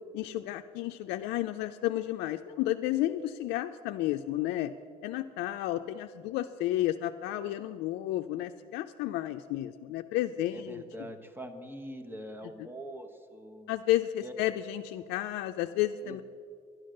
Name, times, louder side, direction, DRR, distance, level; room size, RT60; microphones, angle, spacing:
voice 1, 0.1-4.7 5.0-10.8 13.7-16.2, left 14 dB, 90° left, 7 dB, 0.4 m, -32 dB
voice 2, 10.5-13.7 14.2-14.3 16.0-16.2, right 1 dB, 10° right, 7 dB, 1.1 m, -43 dB
11.0 x 10.5 x 6.4 m, 2.3 s
cardioid pair, 110°, 17 cm